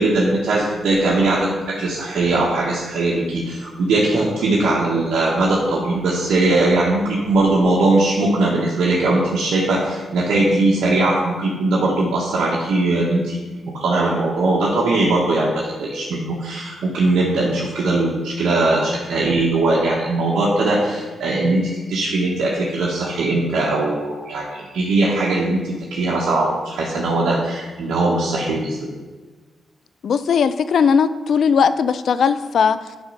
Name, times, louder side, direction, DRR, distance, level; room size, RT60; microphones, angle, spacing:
voice 1, 0.0-28.8, right 2 dB, 85° right, -5 dB, 1.0 m, -20 dB
voice 2, 30.0-32.8, left 6 dB, 70° left, 13 dB, 0.3 m, -18 dB
8.1 x 3.6 x 5.3 m, 1.3 s
cardioid pair, 90°, 0 cm